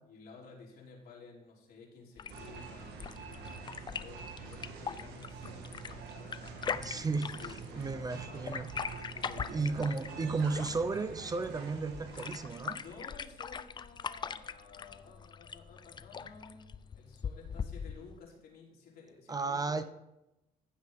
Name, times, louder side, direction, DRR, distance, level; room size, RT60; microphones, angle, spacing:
voice 1, 0.1-8.4 9.1-10.3 10.6-10.7 12.7-19.8, left 4 dB, 65° left, -3 dB, 3.6 m, -53 dB
sound 1, 2.2-18.2, left 6 dB, 25° left, 0.4 m, -42 dB
sound 2, 2.3-13.1, right 5 dB, 80° right, 1.8 m, -46 dB
voice 2, 6.7-8.7 9.0-9.1 9.5-12.8 19.3-19.8, right 4 dB, 20° right, 11 dB, 0.6 m, -34 dB
14.5 x 7.6 x 3.7 m, 0.90 s
cardioid pair, 110°, 17 cm